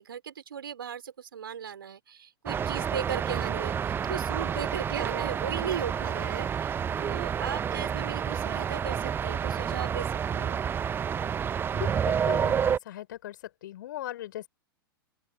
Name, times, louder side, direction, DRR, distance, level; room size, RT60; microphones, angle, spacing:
voice 1, 0.0-10.6, right 8 dB, 65° right, 3.7 m, -37 dB
sound 1, 2.5-12.8, right 8 dB, 15° right, 0.9 m, -29 dB
voice 2, 11.6-13.4 13.6-14.5, left 13 dB, 55° left, 5.2 m, -39 dB
open air
figure-of-eight pair, 100°, 13 cm